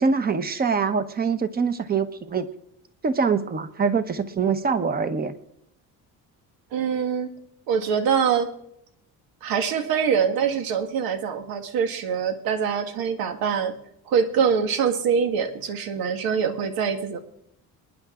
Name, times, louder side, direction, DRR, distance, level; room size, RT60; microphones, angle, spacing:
voice 1, 0.0-2.5 3.0-5.3, right 5 dB, 25° right, 11 dB, 1.1 m, -24 dB
voice 2, 6.7-7.3 7.7-8.5 9.4-13.7 14.1-17.2, right 7 dB, 90° right, 8 dB, 1.7 m, -24 dB
27.0 x 10.5 x 3.8 m, 0.76 s
cardioid pair, 145°, 34 cm